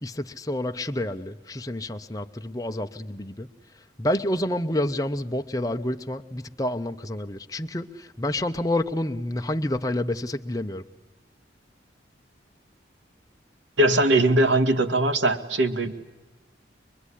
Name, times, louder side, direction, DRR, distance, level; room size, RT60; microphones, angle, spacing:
voice 1, 0.0-3.5 4.0-10.8, left 1 dB, 20° left, 6 dB, 0.8 m, -28 dB
voice 2, 13.8-15.9, right 1 dB, 75° right, 8 dB, 2.0 m, -20 dB
24.0 x 23.0 x 10.0 m, 1.2 s
head